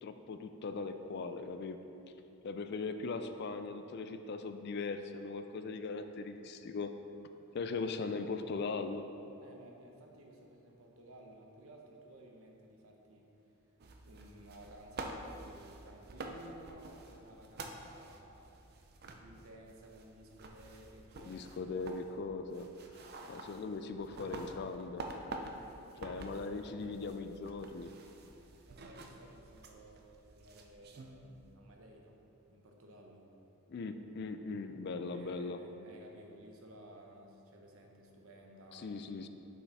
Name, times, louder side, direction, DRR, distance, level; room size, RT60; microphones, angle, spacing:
voice 1, 0.0-1.8 2.4-6.9 7.5-9.0 21.2-22.7 22.9-25.0 26.0-27.9 33.7-35.6 38.7-39.3, left 4 dB, 50° left, 8 dB, 0.3 m, -39 dB
voice 2, 9.4-13.3 14.0-18.6 19.1-22.0 23.2-23.4 25.8-26.3 26.5-27.0 28.6-32.2 32.5-33.3 35.0-39.0, right 1 dB, 65° right, 1 dB, 0.9 m, -56 dB
sound 1, 13.8-31.5, right 2 dB, 45° right, 0.5 m, -49 dB
6.4 x 5.6 x 4.1 m, 2.8 s
head